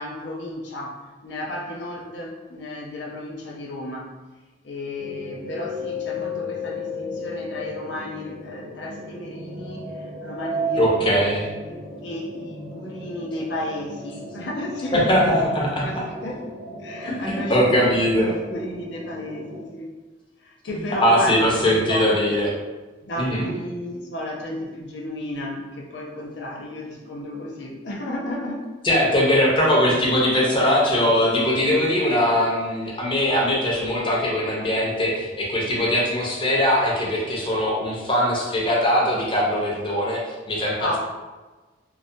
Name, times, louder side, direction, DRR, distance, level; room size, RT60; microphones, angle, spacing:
voice 1, 0.0-4.1 4.6-11.3 11.7-17.6 17.9-19.9 20.4-22.1 23.0-28.7 40.8-41.0, left 1 dB, 75° left, -2 dB, 0.5 m, -33 dB
sound 1, 5.0-19.6, left 1 dB, 55° right, 0.5 m, -34 dB
voice 2, 10.7-11.4 14.9-16.0 17.0-18.3 20.7-22.5 23.2-23.5 28.8-40.2 40.5-41.0, equal, 30° left, -4 dB, 0.6 m, -21 dB
2.3 x 2.1 x 2.6 m, 1.2 s
head